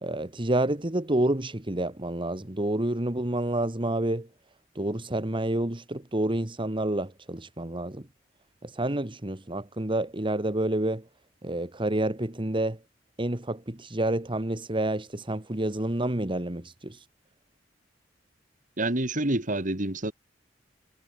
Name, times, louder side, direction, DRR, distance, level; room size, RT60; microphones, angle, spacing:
voice 1, 0.0-4.3 4.8-8.1 8.6-11.0 11.4-12.8 13.2-17.1, right 1 dB, 25° right, 1.8 m, -29 dB
voice 2, 18.8-20.1, right 1 dB, 45° right, 2.9 m, -27 dB
head